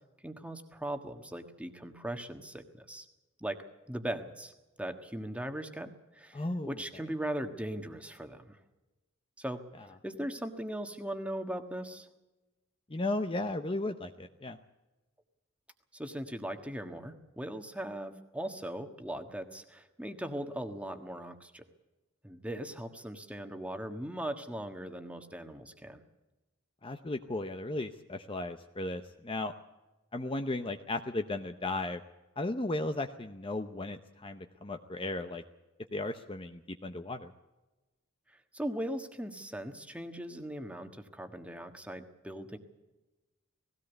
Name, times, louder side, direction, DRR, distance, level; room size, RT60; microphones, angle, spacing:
voice 1, 0.2-3.1 3.4-3.6 3.9-4.5 4.8-8.6 9.4-12.1 15.9-21.7 22.2-26.0 38.3-42.6, right 1 dB, 5° right, 6 dB, 1.4 m, -39 dB
voice 2, 6.3-6.7 12.9-14.6 26.8-29.5 30.1-32.0 32.4-35.4 35.9-37.3, left 2 dB, 25° left, 7 dB, 0.7 m, -35 dB
19.0 x 17.0 x 8.1 m, 1.1 s
head